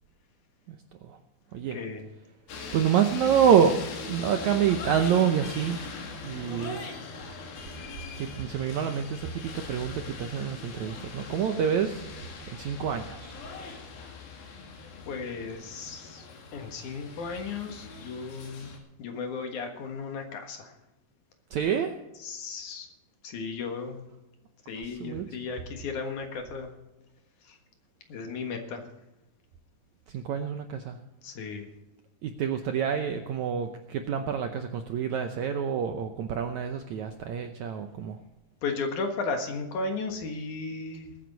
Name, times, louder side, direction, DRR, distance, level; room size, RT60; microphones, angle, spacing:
voice 1, 0.7-1.2 1.5-1.8 2.7-3.7 4.1-5.8 6.2-6.9 8.2-12.1 12.5-13.4 21.5-21.9 24.8-25.3 30.1-31.0 32.2-38.2, right 8 dB, 75° right, 6 dB, 1.7 m, -27 dB
voice 2, 1.7-2.0 15.1-16.3 16.5-18.7 19.0-20.7 22.2-22.9 23.2-24.1 24.7-26.7 27.4-27.6 28.1-28.9 31.2-31.7 38.6-41.1, left 4 dB, 60° left, 4 dB, 2.8 m, -35 dB
sound 1, 2.5-18.8, left 4 dB, 80° left, 3.9 m, -41 dB
21.0 x 9.5 x 4.0 m, 0.97 s
omnidirectional pair, 4.2 m